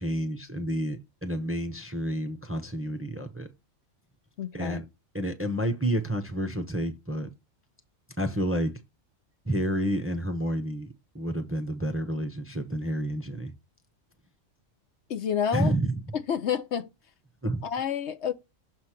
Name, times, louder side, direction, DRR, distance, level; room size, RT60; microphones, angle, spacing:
voice 1, 0.0-3.5 4.5-4.8 5.1-7.3 8.2-8.7 9.5-13.5 15.5-16.0 17.4-17.6, right 1 dB, 15° right, 0.7 m, -29 dB
voice 2, 4.4-4.8 15.1-15.7 16.1-16.9 17.6-18.3, left 8 dB, 65° left, 1.0 m, -29 dB
6.9 x 3.1 x 5.7 m
omnidirectional pair, 1.3 m